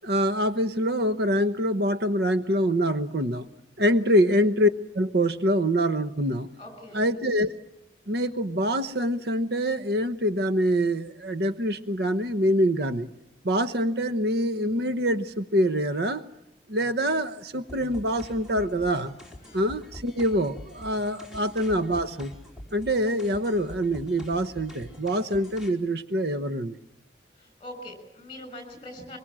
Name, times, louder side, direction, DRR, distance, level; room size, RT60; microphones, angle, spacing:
voice 1, 0.0-3.5 3.8-6.5 6.9-7.5 8.1-13.1 13.4-16.2 16.7-19.2 19.5-22.3 22.7-26.8, equal, 60° right, 11 dB, 1.0 m, -25 dB
voice 2, 6.6-7.0 19.4-19.6 21.3-21.4 27.4-29.2, left 1 dB, 25° left, 8 dB, 6.7 m, -43 dB
sound 1, 17.7-25.7, left 1 dB, ahead, 4.2 m, -45 dB
24.5 x 23.5 x 7.5 m, 0.93 s
head